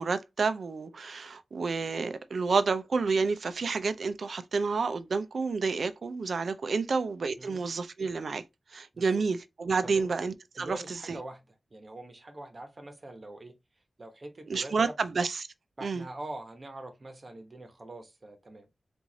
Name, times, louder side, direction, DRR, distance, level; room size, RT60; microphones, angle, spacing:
voice 1, 0.0-8.4 8.7-11.2 14.5-15.5 15.8-16.0, right 4 dB, 70° right, 0.5 m, -30 dB
voice 2, 9.8-10.1 10.5-11.4 11.7-13.5 14.0-14.9 15.8-18.7, right 2 dB, 35° right, 1.1 m, -44 dB
4.7 x 2.6 x 3.9 m
wide cardioid pair, 140°, 0 cm